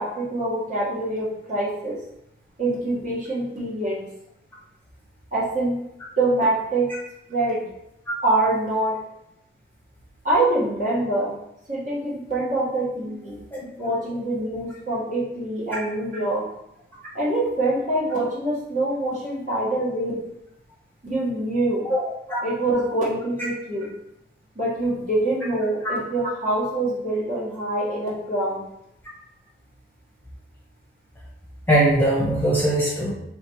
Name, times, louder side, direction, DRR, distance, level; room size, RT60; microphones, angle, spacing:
voice 1, 0.0-2.0 2.6-4.0 5.3-5.8 6.2-6.9 7.3-7.6 8.2-8.9 10.2-11.4 11.7-13.4 13.8-16.4 17.1-20.2 21.0-21.9 22.3-23.9 24.5-28.6, right 2 dB, 45° right, -7 dB, 1.7 m, -25 dB
voice 2, 21.9-22.4 31.7-33.1, right 1 dB, 10° left, -5 dB, 0.9 m, -21 dB
3.3 x 3.1 x 4.6 m, 0.80 s
head